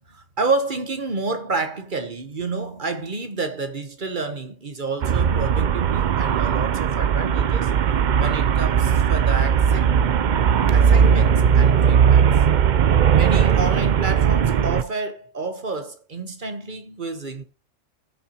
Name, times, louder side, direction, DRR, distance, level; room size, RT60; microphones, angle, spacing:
voice 1, 0.0-7.7 8.2-9.9 10.7-12.4 13.1-17.4, right 3 dB, 40° right, 1.1 m, -29 dB
Traffic noise roadway noise, 5.0-14.8, right 7 dB, 65° right, 0.4 m, -18 dB
16.5 x 5.8 x 2.9 m
omnidirectional pair, 1.4 m